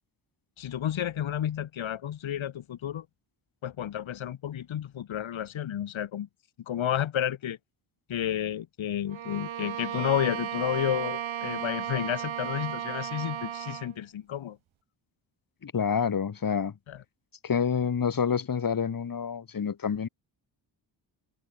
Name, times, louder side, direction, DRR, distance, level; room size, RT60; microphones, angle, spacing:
voice 1, 0.6-3.1 3.6-6.3 6.7-7.6 8.1-14.6 16.9-17.0, left 10 dB, 85° left, 3.4 m, -31 dB
Bowed string instrument, 9.1-14.0, right 10 dB, 90° right, 3.6 m, -34 dB
voice 2, 15.6-16.7 17.4-20.1, left 7 dB, 45° left, 3.6 m, -28 dB
wide cardioid pair, 135°, 46 cm